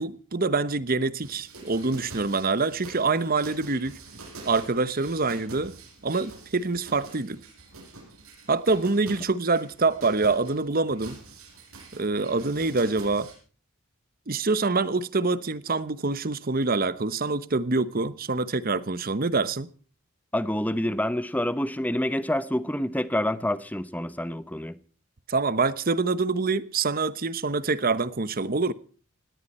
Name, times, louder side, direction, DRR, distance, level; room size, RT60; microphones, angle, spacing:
voice 1, 0.0-4.0 4.4-5.7 6.0-7.4 8.5-11.2 12.0-13.3 14.3-19.7 25.3-28.7, right 3 dB, 40° right, 0.9 m, -25 dB
sound 1, 1.2-13.3, right 3 dB, 70° right, 7.0 m, -46 dB
voice 2, 20.3-24.8, left 1 dB, 5° left, 0.9 m, -27 dB
18.5 x 18.0 x 4.3 m
head